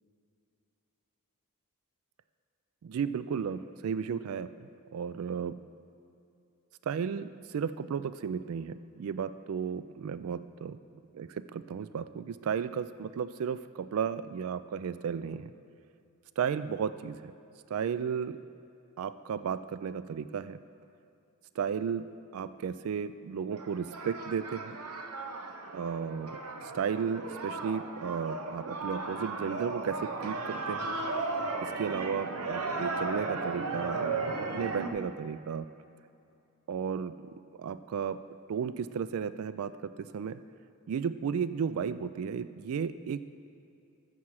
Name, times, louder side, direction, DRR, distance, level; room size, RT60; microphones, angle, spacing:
voice 1, 2.8-4.5 4.9-5.6 6.9-10.8 11.1-15.5 16.4-17.3 17.7-18.4 19.0-20.6 21.6-22.1 22.3-24.8 25.7-26.4 26.7-30.9 31.6-35.7 36.7-37.1 37.6-38.2 38.5-40.4 40.9-43.2, right 7 dB, 70° right, 14 dB, 0.3 m, -34 dB
sound 1, 23.5-34.9, right 3 dB, 85° right, 0.8 m, -35 dB
13.0 x 7.3 x 4.7 m, 2.7 s
head